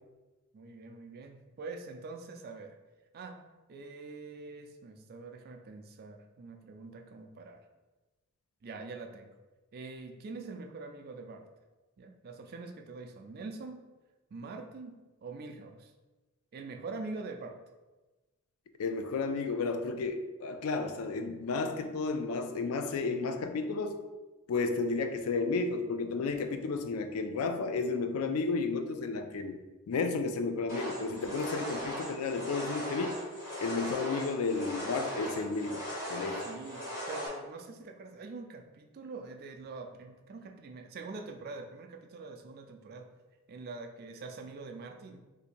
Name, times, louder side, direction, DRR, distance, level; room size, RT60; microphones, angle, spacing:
voice 1, 0.5-2.7 3.1-3.4 3.7-7.6 8.6-9.3 9.7-11.5 12.0-13.9 14.3-15.9 16.5-17.6 30.5-30.6 31.2-31.3 36.4-43.1 43.5-45.2, right 3 dB, 45° right, 4 dB, 0.4 m, -44 dB
voice 2, 18.8-24.0 24.5-29.6 29.9-33.2 33.6-35.8 36.1-36.4, left 4 dB, 75° left, 7 dB, 0.4 m, -32 dB
sound 1, 30.7-37.3, equal, 45° left, 1.4 m, -38 dB
2.7 x 2.5 x 4.3 m, 1.2 s
head